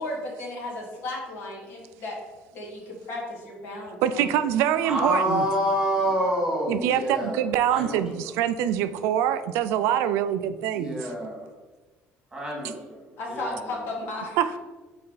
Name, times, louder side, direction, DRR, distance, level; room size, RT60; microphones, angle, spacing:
voice 1, 0.0-2.2 2.5-4.4 13.2-14.6, left 2 dB, 55° left, -1 dB, 1.7 m, -35 dB
voice 2, 4.0-5.4 6.7-11.1 14.4-14.6, right 10 dB, 85° right, 11 dB, 0.3 m, -24 dB
voice 3, 4.8-7.4 7.7-8.0 10.7-11.5 12.3-13.0 13.3-13.6, equal, 15° right, -2 dB, 1.8 m, -27 dB
5.5 x 4.3 x 3.9 m, 1.2 s
cardioid pair, 155°, 5 cm